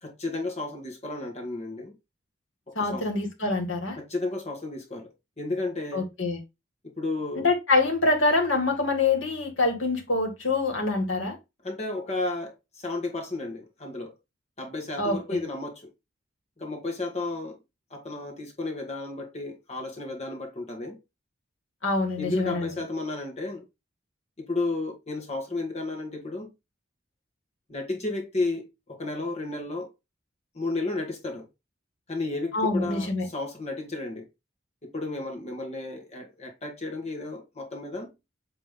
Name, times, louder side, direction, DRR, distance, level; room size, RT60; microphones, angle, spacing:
voice 1, 0.0-1.9 2.7-3.0 4.0-6.1 7.0-7.5 11.6-14.1 14.6-15.9 16.6-17.6 17.9-21.0 22.2-23.6 24.4-26.5 27.7-29.9 30.5-31.5 32.1-34.3 34.8-38.1, left 2 dB, 35° left, 1.6 m, -33 dB
voice 2, 2.8-4.0 5.9-6.4 7.4-11.4 15.0-15.2 21.8-22.7 32.5-33.3, left 3 dB, 90° left, 2.3 m, -25 dB
8.6 x 3.3 x 3.7 m
head